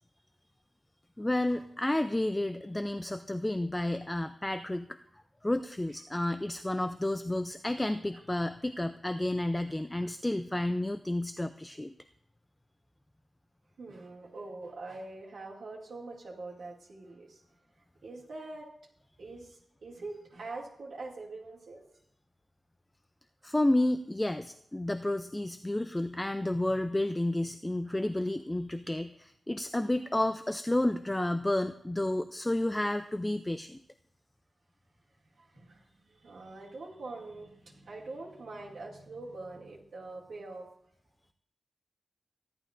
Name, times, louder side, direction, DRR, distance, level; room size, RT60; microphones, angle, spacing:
voice 1, 1.2-5.0 5.4-11.9 23.4-33.8, left 1 dB, 10° left, 9 dB, 0.3 m, -31 dB
voice 2, 13.8-17.4 18.0-18.7 19.2-21.8 26.5-26.8 27.8-28.0 35.4-40.7, right 3 dB, 80° right, -5 dB, 2.2 m, -44 dB
15.5 x 11.0 x 2.5 m, 0.74 s
wide cardioid pair, 145°, 0 cm